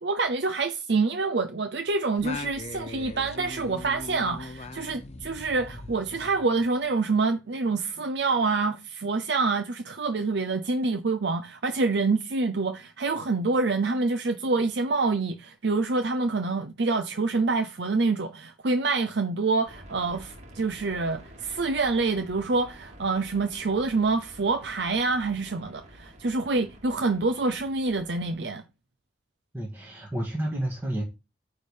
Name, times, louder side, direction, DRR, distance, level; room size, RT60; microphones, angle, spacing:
voice 1, 0.0-28.6, right 3 dB, 65° right, 0.7 m, -26 dB
Singing, 2.2-6.9, left 3 dB, 35° left, 0.8 m, -40 dB
sound 1, 19.6-28.5, equal, 40° right, 2.0 m, -49 dB
voice 2, 29.5-31.0, right 1 dB, 10° right, 1.9 m, -30 dB
9.5 x 3.6 x 6.5 m
head